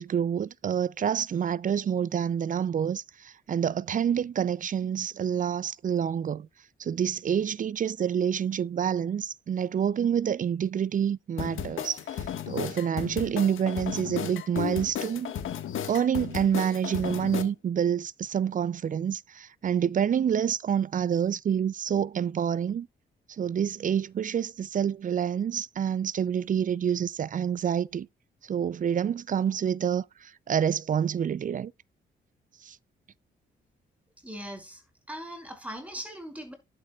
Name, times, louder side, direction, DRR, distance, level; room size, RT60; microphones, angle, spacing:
voice 1, 0.0-6.5 6.8-15.3 15.9-22.9 23.4-28.1 28.5-31.7 32.6-32.8, right 8 dB, 40° right, 0.4 m, -28 dB
sound 1, 11.4-17.4, left 9 dB, 80° left, 1.5 m, -34 dB
voice 2, 34.2-36.5, equal, 5° right, 5.6 m, -40 dB
11.5 x 8.0 x 2.3 m
cardioid pair, 90°, 20 cm